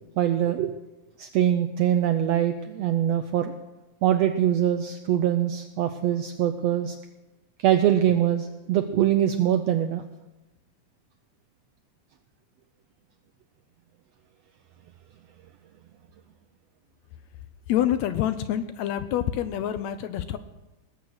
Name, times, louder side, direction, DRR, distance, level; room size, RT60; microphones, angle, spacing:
voice 1, 0.2-0.8 1.2-3.5 4.0-7.0 7.6-10.0, right 11 dB, 80° right, 8 dB, 1.5 m, -23 dB
voice 2, 17.7-20.4, left 11 dB, 75° left, 11 dB, 1.7 m, -26 dB
19.0 x 8.2 x 6.4 m, 1.1 s
omnidirectional pair, 3.6 m